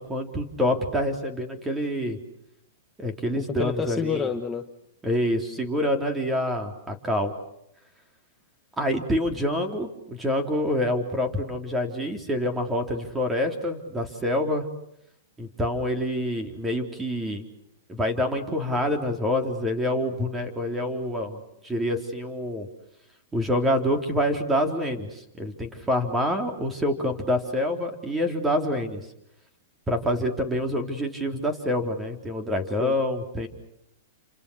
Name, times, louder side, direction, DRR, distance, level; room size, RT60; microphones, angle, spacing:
voice 1, 0.0-2.2 3.0-4.3 5.0-7.3 8.8-14.7 15.4-17.4 17.9-22.7 23.3-29.0 29.9-33.5, left 1 dB, 10° right, 5 dB, 3.9 m, -26 dB
voice 2, 3.3-4.6 32.8-33.0, left 6 dB, 15° left, 5 dB, 1.3 m, -29 dB
29.0 x 27.0 x 6.5 m, 0.78 s
hypercardioid pair, 135°, 0 cm